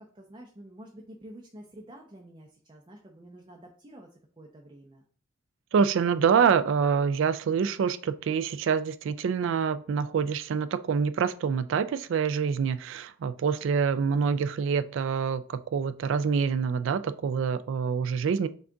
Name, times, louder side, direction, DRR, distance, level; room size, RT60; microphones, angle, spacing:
voice 1, 0.0-5.0, right 1 dB, 25° right, 0 dB, 0.6 m, -49 dB
voice 2, 5.7-18.5, right 6 dB, 65° right, 13 dB, 0.3 m, -26 dB
5.8 x 2.4 x 3.8 m, 0.43 s
head